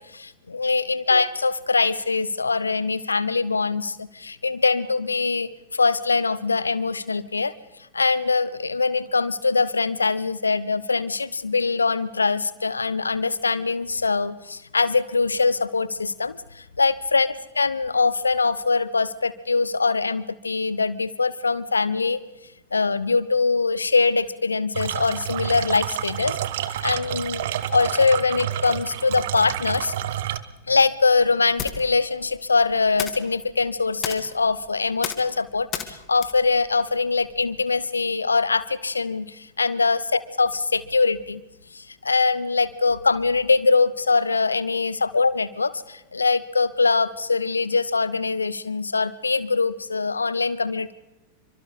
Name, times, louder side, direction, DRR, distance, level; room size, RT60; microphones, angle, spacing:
voice 1, 0.0-7.5 7.9-22.2 22.7-26.4 26.7-29.9 30.7-41.4 41.7-50.9, left 4 dB, 75° left, 18 dB, 1.0 m, -23 dB
sound 1, 24.7-30.4, right 12 dB, 55° right, 1.3 m, -29 dB
sound 2, 30.5-37.7, left 10 dB, 35° left, 2.6 m, -37 dB
28.5 x 25.0 x 4.2 m, 1.0 s
figure-of-eight pair, 90°, 0 cm